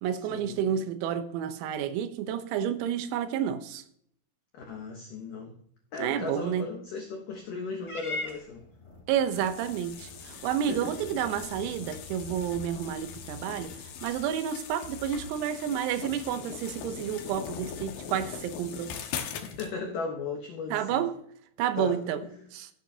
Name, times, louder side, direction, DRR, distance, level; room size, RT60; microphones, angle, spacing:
voice 1, 0.0-3.8 6.0-6.7 9.1-18.9 20.7-21.1 21.6-22.2 22.5-22.7, right 9 dB, 90° right, 3.7 m, -30 dB
voice 2, 4.5-5.6 5.9-8.6 10.7-10.9 19.4-21.0 21.8-22.4, left 4 dB, 90° left, 1.8 m, -37 dB
Purr / Meow, 7.8-14.3, left 2 dB, 15° left, 5.3 m, -44 dB
sound 1, 9.3-19.7, left 7 dB, 70° left, 2.7 m, -41 dB
16.0 x 9.1 x 2.8 m
omnidirectional pair, 5.9 m